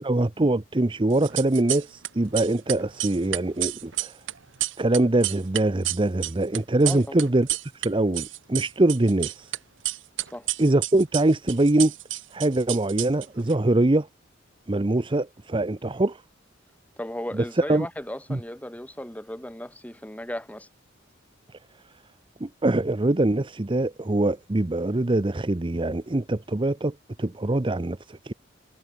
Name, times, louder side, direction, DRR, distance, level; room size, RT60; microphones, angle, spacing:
voice 1, 0.0-4.2 4.8-7.5 7.7-9.5 10.6-11.9 12.3-14.1 14.7-16.2 17.6-17.9 18.3-18.4 22.4-28.3, right 2 dB, 25° right, 0.7 m, -23 dB
sound 1, 1.1-2.1 2.3-7.9 8.1-9.6 9.8-13.5, right 16 dB, 65° right, 1.4 m, -30 dB
voice 2, 6.8-7.2 10.3-10.5 17.0-20.7, left 1 dB, 5° left, 2.2 m, -36 dB
head